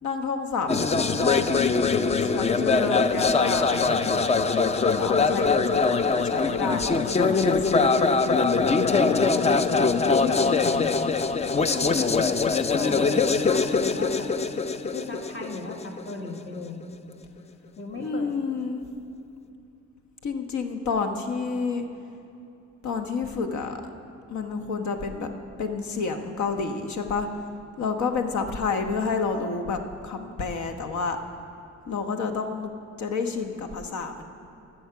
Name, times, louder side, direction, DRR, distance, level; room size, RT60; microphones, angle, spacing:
voice 1, 0.0-4.1 5.0-7.9 17.9-18.8 20.2-21.9 22.8-23.9 24.3-25.3 25.6-27.3 27.8-31.2 31.9-32.7 33.0-34.2, left 4 dB, 70° left, 6 dB, 1.1 m, -30 dB
sound 1, 0.7-16.5, left 4 dB, 20° left, 0.4 m, -22 dB
voice 2, 8.7-11.0 11.4-12.1 12.7-14.3 14.9-16.8 17.8-18.3, left 3 dB, 40° left, 2 dB, 1.7 m, -36 dB
13.0 x 7.3 x 6.9 m, 2.7 s
cardioid pair, 90°, 30 cm